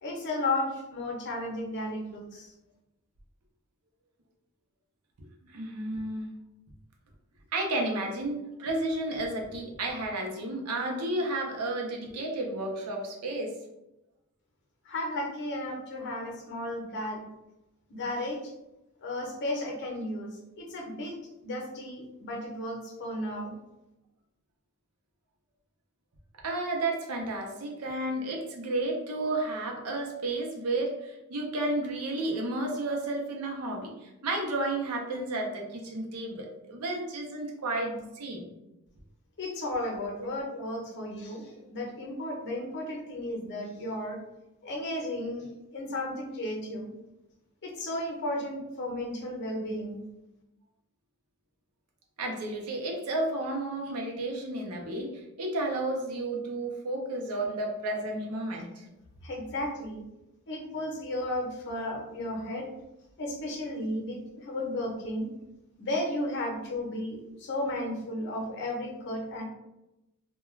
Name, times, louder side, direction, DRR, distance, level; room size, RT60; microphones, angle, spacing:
voice 1, 0.0-2.5 14.8-17.2 17.9-18.5 19.0-21.1 21.4-23.5 39.4-44.2 44.6-45.5 45.7-46.9 47.6-50.0 59.2-60.0 60.5-62.7 63.2-65.3 65.8-69.4, left 1 dB, 50° left, 0 dB, 0.6 m, -34 dB
voice 2, 5.5-6.3 7.5-13.5 26.4-38.5 40.2-40.3 52.2-58.9, right 2 dB, 85° right, 1 dB, 0.6 m, -32 dB
2.3 x 2.2 x 3.0 m, 0.94 s
head